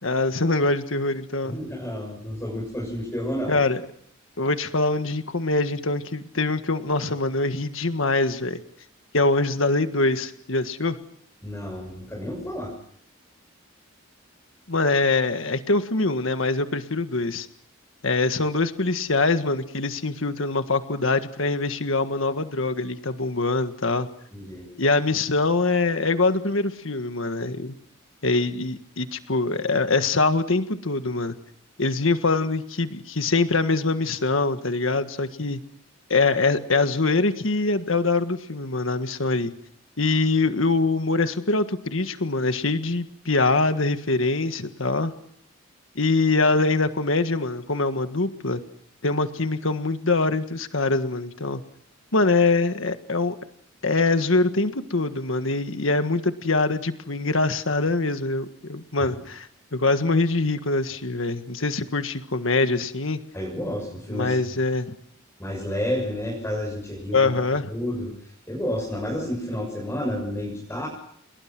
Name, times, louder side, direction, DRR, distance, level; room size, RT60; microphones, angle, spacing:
voice 1, 0.0-1.6 3.5-3.8 4.4-8.6 9.1-11.0 14.7-17.5 18.0-24.1 24.8-27.7 28.2-31.3 31.8-35.6 36.1-39.5 40.0-45.1 45.9-48.6 49.0-51.6 52.1-53.3 53.8-63.2 64.1-64.9 67.1-67.7, left 3 dB, 70° left, 9 dB, 1.7 m, -23 dB
voice 2, 1.4-3.6 11.4-12.7 24.3-24.7 59.0-59.1 63.3-64.4 65.4-67.3 67.7-70.9, left 1 dB, 15° left, -2 dB, 6.8 m, -30 dB
29.5 x 22.5 x 6.1 m, 0.69 s
head